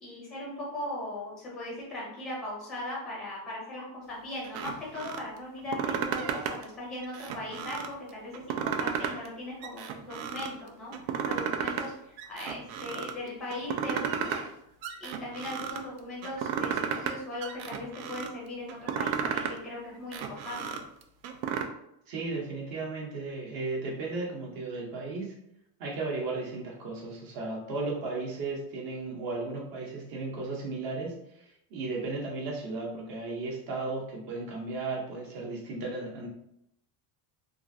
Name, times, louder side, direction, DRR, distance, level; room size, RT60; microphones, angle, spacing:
voice 1, 0.0-14.4 15.0-20.8, left 1 dB, ahead, -4 dB, 0.5 m, -39 dB
sound 1, 4.4-5.2 5.6-6.6 7.0-7.9 8.3-9.3 9.6-10.5 10.9-11.9 12.2-13.1 13.5-14.5 14.8-15.8 16.2-17.1 17.4-18.3 18.7-19.6 20.0-21.6, right 7 dB, 75° right, 0.5 m, -33 dB
voice 2, 22.1-25.3 25.8-36.3, right 3 dB, 45° right, -1 dB, 0.8 m, -35 dB
2.8 x 2.5 x 2.6 m, 0.78 s
cardioid pair, 175°, 49 cm